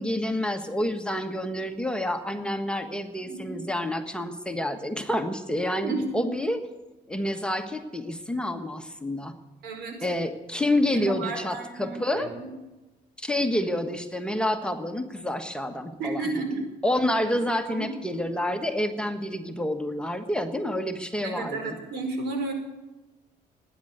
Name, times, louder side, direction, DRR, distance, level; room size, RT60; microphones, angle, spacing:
voice 1, 0.0-6.6 7.1-9.3 10.0-12.3 13.2-21.8, left 1 dB, 5° left, 5 dB, 1.3 m, -28 dB
voice 2, 3.2-3.6 5.8-6.3 9.6-10.1 10.9-12.5 16.0-16.6 17.7-17.9 21.2-22.5, right 3 dB, 80° right, 4 dB, 4.9 m, -32 dB
18.0 x 10.0 x 8.0 m, 1.1 s
cardioid pair, 110°, 17 cm